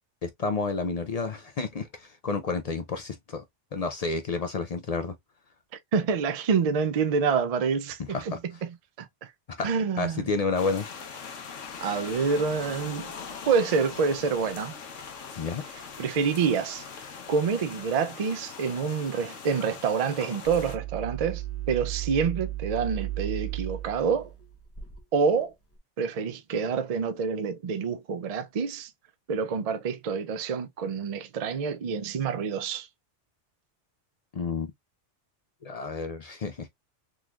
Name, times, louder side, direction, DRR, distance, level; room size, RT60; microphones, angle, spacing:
voice 1, 0.2-3.4 3.7-5.1 8.1-8.4 9.6-9.7 10.0-10.8 15.4-15.6 34.3-34.7 35.6-36.7, left 4 dB, 65° left, 0.4 m, -30 dB
voice 2, 5.9-8.3 9.0-9.1 9.6-10.2 11.8-13.1 13.5-14.8 16.0-16.8 17.3-24.3 25.1-25.5 26.0-28.9 29.3-32.9, right 5 dB, 65° right, 0.3 m, -27 dB
sound 1, 10.5-20.8, left 6 dB, 90° left, 1.2 m, -41 dB
sound 2, 20.5-25.0, right 14 dB, 15° left, 0.7 m, -35 dB
3.8 x 3.0 x 2.3 m
omnidirectional pair, 1.2 m